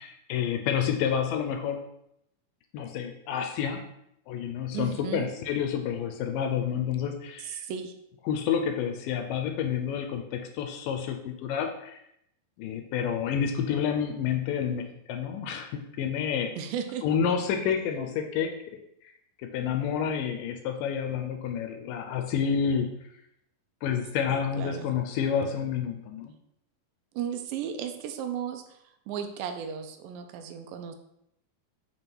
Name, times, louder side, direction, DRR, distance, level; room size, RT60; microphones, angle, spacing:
voice 1, 0.0-1.8 2.7-3.8 4.3-7.6 8.3-12.0 12.6-16.5 17.0-18.5 19.4-23.0 23.8-26.3, left 7 dB, 80° left, 5 dB, 2.2 m, -29 dB
voice 2, 4.7-5.3 7.4-7.9 16.6-17.1 24.3-25.0 27.1-28.8 29.1-31.0, right 8 dB, 90° right, 6 dB, 2.4 m, -35 dB
7.0 x 3.2 x 4.5 m, 0.77 s
omnidirectional pair, 4.1 m